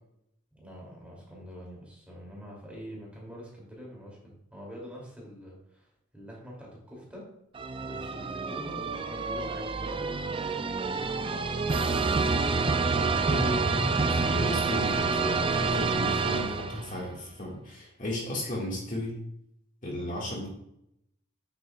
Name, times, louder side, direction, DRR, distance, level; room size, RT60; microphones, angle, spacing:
voice 1, 0.5-5.9 6.1-7.3 7.8-10.1 10.5-12.1 12.6-13.7, equal, 5° right, -3 dB, 2.7 m, -45 dB
sound 1, 7.6-17.1, right 4 dB, 25° right, 0.4 m, -28 dB
voice 2, 13.0-19.2 19.8-20.5, left 1 dB, 40° left, -3 dB, 1.9 m, -35 dB
8.9 x 8.4 x 2.4 m, 0.79 s
head